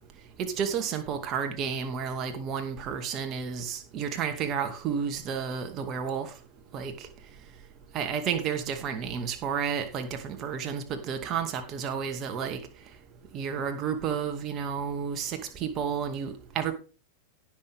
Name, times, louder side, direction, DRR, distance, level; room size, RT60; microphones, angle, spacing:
voice 1, 0.4-6.3 6.7-6.9 7.9-12.6 13.3-16.7, right 7 dB, 35° right, 6 dB, 2.3 m, -31 dB
17.5 x 6.7 x 3.6 m, 0.33 s
figure-of-eight pair, 90°, 0 cm